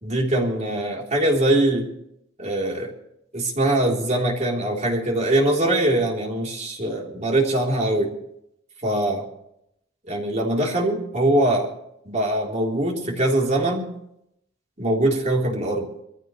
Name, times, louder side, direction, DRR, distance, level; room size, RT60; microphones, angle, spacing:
voice 1, 0.0-1.9 2.4-2.9 3.3-8.1 8.8-9.3 10.1-11.7 12.1-13.9 14.8-15.9, right 1 dB, 35° right, -1 dB, 3.6 m, -22 dB
23.0 x 15.5 x 3.2 m, 0.76 s
head